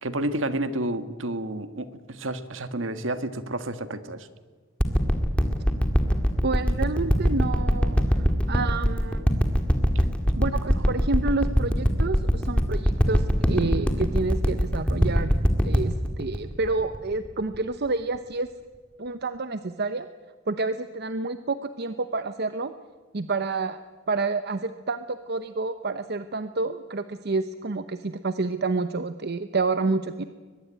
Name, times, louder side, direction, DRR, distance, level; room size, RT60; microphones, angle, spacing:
voice 1, 0.0-4.3 10.6-10.7, right 1 dB, 70° right, 11 dB, 1.7 m, -30 dB
sound 1, 4.8-17.6 18.1-18.2, equal, 5° left, 2.3 m, -22 dB
voice 2, 6.4-8.2 8.5-9.4 10.4-15.3 15.6-18.5 19.0-20.1 20.5-22.7 23.1-23.8 24.1-30.2, right 3 dB, 55° right, 11 dB, 0.9 m, -29 dB
22.5 x 20.5 x 9.0 m, 1.4 s
head